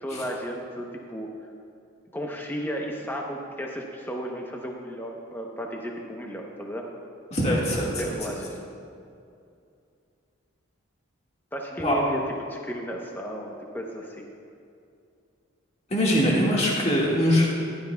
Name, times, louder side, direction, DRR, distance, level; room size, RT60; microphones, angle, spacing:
voice 1, 0.0-1.3 2.1-6.8 8.0-8.6 11.5-14.3, equal, 10° left, 0 dB, 0.8 m, -34 dB
voice 2, 7.3-8.1 11.8-12.0 15.9-17.5, equal, 30° left, -4 dB, 1.8 m, -22 dB
14.5 x 12.0 x 2.3 m, 2.5 s
head